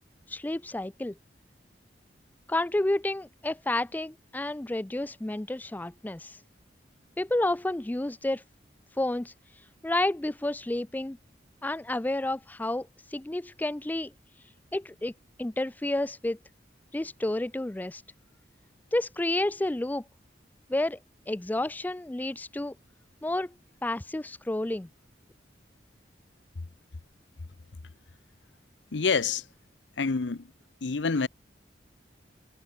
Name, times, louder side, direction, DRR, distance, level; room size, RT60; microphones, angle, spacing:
voice 1, 0.3-1.1 2.5-6.4 7.2-8.4 9.0-9.3 9.8-11.2 11.6-14.1 14.7-15.1 15.4-16.4 16.9-18.0 18.9-20.0 20.7-21.0 21.3-22.7 23.2-23.5 23.8-24.9, left 1 dB, 10° left, 0.4 m, -30 dB
voice 2, 28.9-29.4 30.0-30.4 30.8-31.3, left 4 dB, 85° left, 0.8 m, -26 dB
head